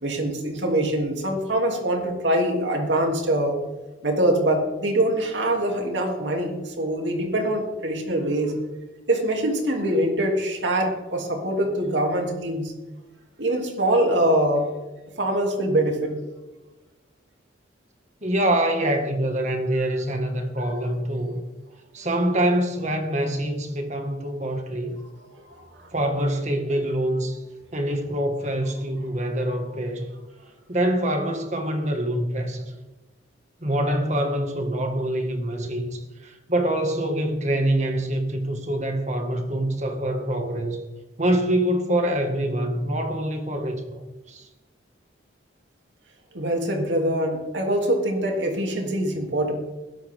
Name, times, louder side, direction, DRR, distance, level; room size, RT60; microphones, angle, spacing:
voice 1, 0.0-3.6 4.0-8.6 9.1-12.7 13.4-14.7 15.1-16.1 25.4-25.7 46.3-49.5, right 1 dB, 75° right, 1 dB, 3.1 m, -24 dB
voice 2, 18.2-21.4 21.9-25.0 25.9-27.4 27.7-30.1 30.7-32.6 33.6-40.8 41.2-44.5, right 1 dB, 40° right, 4 dB, 2.0 m, -25 dB
21.5 x 12.0 x 3.7 m, 1.1 s
head